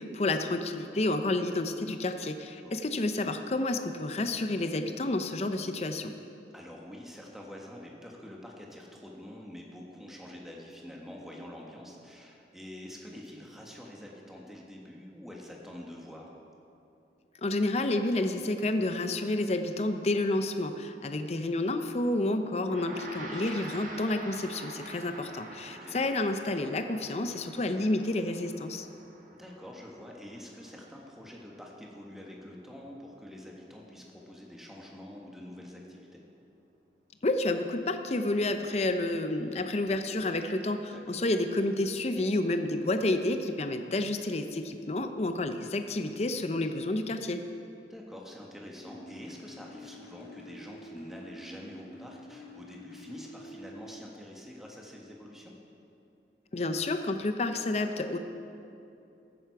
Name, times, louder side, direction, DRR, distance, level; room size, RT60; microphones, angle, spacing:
voice 1, 0.0-6.1 17.4-28.9 37.2-47.4 56.5-58.2, left 2 dB, 40° left, 8 dB, 0.6 m, -30 dB
voice 2, 2.6-3.0 6.5-16.3 25.6-26.0 29.3-36.2 40.9-41.2 47.9-55.5, left 1 dB, ahead, -2 dB, 1.4 m, -46 dB
Gong, 22.6-32.2, right 2 dB, 50° right, 1.3 m, -47 dB
sound 1, 48.8-54.0, equal, 70° left, 1.6 m, -49 dB
15.0 x 9.5 x 4.6 m, 2.7 s
head